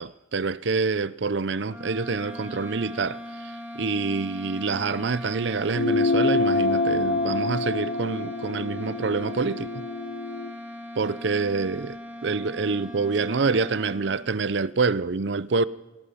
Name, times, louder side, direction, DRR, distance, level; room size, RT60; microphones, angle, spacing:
voice 1, 0.0-9.8 11.0-15.6, right 4 dB, 65° right, 0.6 m, -27 dB
sound 1, 1.6-14.4, left 1 dB, 10° right, 3.0 m, -40 dB
sound 2, 5.7-10.6, left 3 dB, 60° left, 0.9 m, -26 dB
25.0 x 19.5 x 5.7 m
head